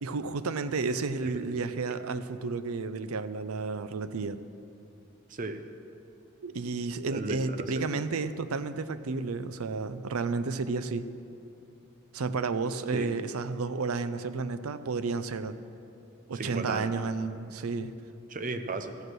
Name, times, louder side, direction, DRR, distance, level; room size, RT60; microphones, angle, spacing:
voice 1, 0.0-4.4 6.4-11.1 12.1-15.6 16.3-17.9, right 4 dB, 85° right, 12 dB, 0.5 m, -32 dB
voice 2, 5.3-5.6 7.1-7.9 12.9-13.1 16.3-16.9 18.3-19.0, right 3 dB, 35° right, 8 dB, 0.6 m, -35 dB
14.0 x 8.0 x 6.1 m, 2.7 s
head